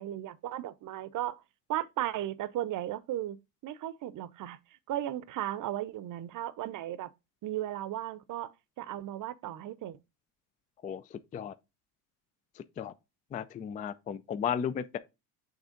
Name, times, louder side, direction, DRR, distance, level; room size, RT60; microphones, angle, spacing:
voice 1, 0.0-1.4 1.7-3.4 3.6-4.6 4.9-7.1 7.4-10.0, right 13 dB, 40° right, 0.7 m, -35 dB
voice 2, 10.8-11.5 12.6-12.9 13.3-15.0, left 8 dB, 20° left, 0.3 m, -35 dB
6.4 x 3.4 x 5.1 m
supercardioid pair, 95°, 46 cm